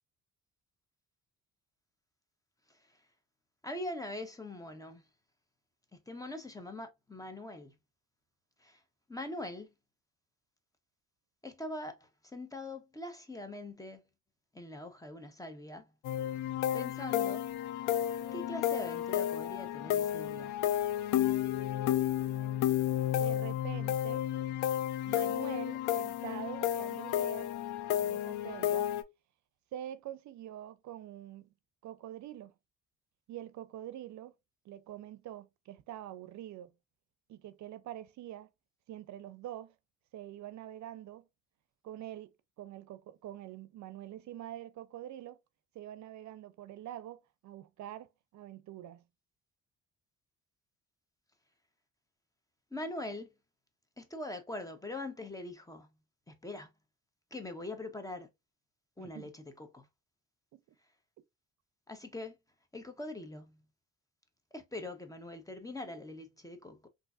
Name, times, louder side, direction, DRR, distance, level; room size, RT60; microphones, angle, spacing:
voice 1, 3.6-5.0 5.9-7.7 8.6-8.8 9.1-9.7 11.4-14.0 14.5-15.9 16.7-17.4 18.1-20.5 52.7-53.3 54.0-55.9 56.3-56.7 57.3-58.3 59.0-59.9 61.9-62.4 62.7-63.6 64.5-66.9, left 1 dB, 10° left, 0.8 m, -42 dB
sound 1, 16.0-29.0, left 11 dB, 85° left, 0.5 m, -32 dB
voice 2, 23.1-24.2 25.0-27.6 28.0-28.9 29.7-31.5 31.8-32.5 33.3-34.3 34.6-36.7 37.3-38.5 38.9-39.7 40.1-41.3 41.8-42.3 42.6-45.4 45.7-49.0 59.0-59.3 60.5-60.6, right 12 dB, 70° right, 0.5 m, -45 dB
3.7 x 2.6 x 2.4 m
cardioid pair, 90°, 30 cm